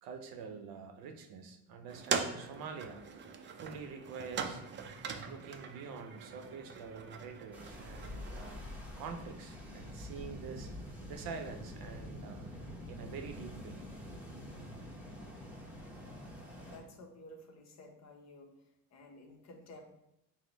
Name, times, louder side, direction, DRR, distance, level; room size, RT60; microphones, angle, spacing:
voice 1, 0.0-3.0 3.5-4.6 5.3-8.6 9.0-10.7 11.1-12.5 12.9-13.9, right 5 dB, 85° right, 6 dB, 0.7 m, -46 dB
sound 1, 1.9-8.6, right 5 dB, 35° right, 0.4 m, -41 dB
sound 2, 7.5-16.8, left 1 dB, 5° right, 0.8 m, -46 dB
voice 2, 16.6-18.5 18.9-19.8, left 1 dB, 50° left, 2 dB, 0.9 m, -53 dB
6.2 x 2.1 x 3.9 m, 0.84 s
cardioid pair, 130°, 35 cm